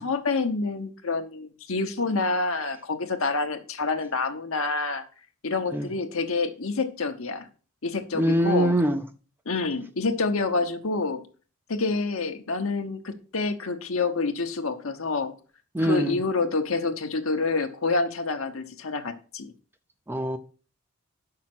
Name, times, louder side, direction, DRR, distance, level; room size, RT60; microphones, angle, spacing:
voice 1, 0.0-5.0 5.4-7.5 7.8-8.7 9.5-11.2 11.7-15.3 15.8-19.5, left 3 dB, 65° left, 1.0 m, -27 dB
voice 2, 8.1-9.0 15.7-16.2 20.1-20.4, right 1 dB, 10° right, 0.5 m, -23 dB
6.4 x 5.8 x 6.0 m
head